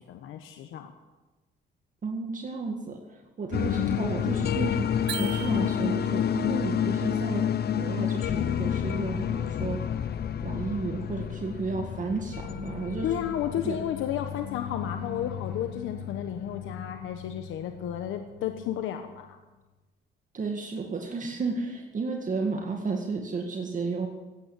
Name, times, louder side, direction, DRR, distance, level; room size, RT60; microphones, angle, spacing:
voice 1, 0.1-0.9 13.0-19.4, left 10 dB, 85° left, 7 dB, 1.1 m, -32 dB
voice 2, 2.0-7.5 7.8-10.0 10.4-13.3 13.6-13.8 20.3-24.1, right 4 dB, 40° right, 2 dB, 1.9 m, -32 dB
sound 1, 3.5-18.6, left 9 dB, 55° left, 0.8 m, -30 dB
sound 2, 5.1-6.2, right 13 dB, 60° right, 0.4 m, -38 dB
16.0 x 9.2 x 8.7 m, 1.2 s
cardioid pair, 90°, 20 cm